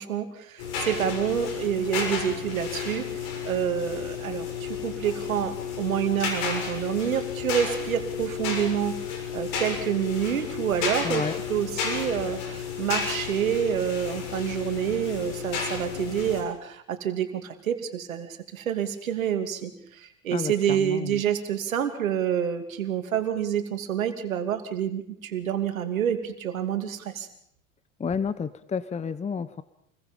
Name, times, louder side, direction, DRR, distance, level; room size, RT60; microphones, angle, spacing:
voice 1, 0.0-8.9 9.3-27.3, right 9 dB, 80° right, 7 dB, 2.8 m, -28 dB
sound 1, 0.6-16.4, left 6 dB, 60° left, 6.8 m, -32 dB
voice 2, 11.0-11.4 20.3-21.2 28.0-29.6, left 6 dB, 15° left, 15 dB, 1.0 m, -30 dB
28.5 x 22.0 x 5.3 m, 0.68 s
hypercardioid pair, 85°, 40 cm